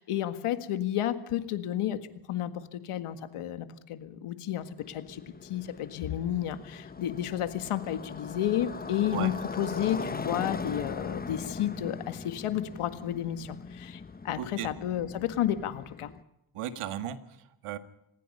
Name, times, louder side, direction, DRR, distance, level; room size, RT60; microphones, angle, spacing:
voice 1, 0.0-2.0 2.3-16.1, left 11 dB, 80° left, 10 dB, 1.9 m, -32 dB
Motorcycle, 4.8-16.2, left 4 dB, 20° left, 0.8 m, -40 dB
voice 2, 14.4-14.7 16.5-17.8, right 10 dB, 85° right, 9 dB, 1.9 m, -36 dB
26.5 x 19.5 x 5.6 m, 0.83 s
cardioid pair, 105°, 50 cm